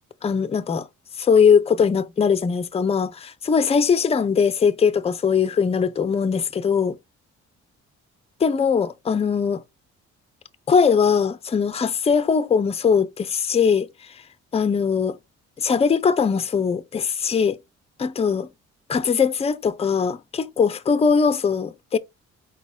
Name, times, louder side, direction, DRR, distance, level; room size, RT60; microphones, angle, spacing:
voice 1, 0.2-0.9 1.2-7.0 8.4-9.6 10.7-13.9 14.5-15.2 15.6-17.6 18.0-18.5 18.9-22.0, left 6 dB, 20° left, 0.5 m, -20 dB
4.0 x 4.0 x 2.7 m
cardioid pair, 90°, 30 cm